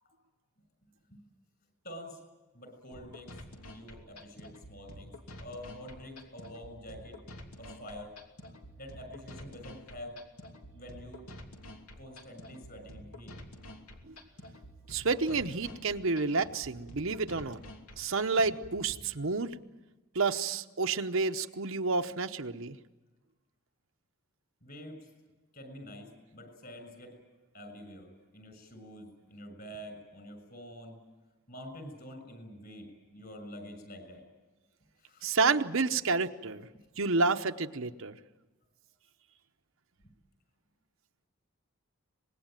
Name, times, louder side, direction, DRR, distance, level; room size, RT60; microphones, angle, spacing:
voice 1, 1.8-2.2 2.5-3.3 3.7-5.1 5.4-7.2 7.6-8.1 8.8-10.2 10.7-11.2 12.0-13.3 24.6-25.0 25.5-27.2 27.5-31.0 31.5-34.2 35.0-35.3 40.0-40.1, equal, 45° left, 7 dB, 6.6 m, -47 dB
sound 1, 2.9-18.9, left 1 dB, 90° left, 2.9 m, -49 dB
voice 2, 14.9-17.6 18.0-19.6 20.1-22.8 35.2-36.7 37.0-38.1, right 4 dB, 65° right, 7 dB, 0.9 m, -30 dB
25.0 x 21.0 x 9.1 m, 1.2 s
head